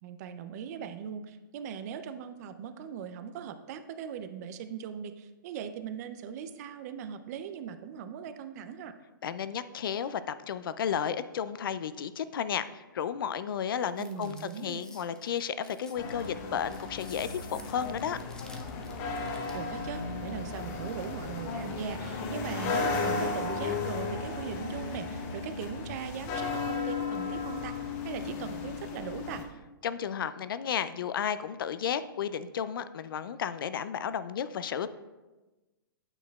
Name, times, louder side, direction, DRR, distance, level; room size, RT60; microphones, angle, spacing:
voice 1, 0.0-8.9 14.0-14.8 19.5-27.8 28.0-29.4, right 8 dB, 45° right, 10 dB, 0.5 m, -39 dB
voice 2, 9.2-18.2 29.8-34.9, left 8 dB, 70° left, 14 dB, 0.4 m, -33 dB
sound 1, 13.8-19.7, left 2 dB, 5° left, 0.5 m, -52 dB
sound 2, 16.0-29.4, left 4 dB, 40° left, 0.9 m, -35 dB
8.8 x 6.3 x 2.3 m, 1.1 s
hypercardioid pair, 135°, 12 cm